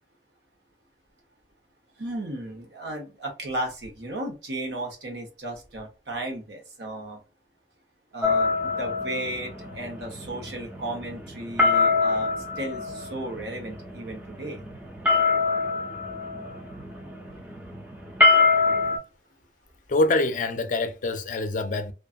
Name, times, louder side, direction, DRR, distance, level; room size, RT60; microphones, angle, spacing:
voice 1, 2.0-7.2 8.1-14.6, right 1 dB, 75° right, 1.0 m, -35 dB
sound 1, 8.2-19.0, left 4 dB, 10° right, 0.6 m, -25 dB
voice 2, 19.9-21.9, left 2 dB, 45° left, 0.4 m, -25 dB
2.4 x 2.4 x 2.4 m
head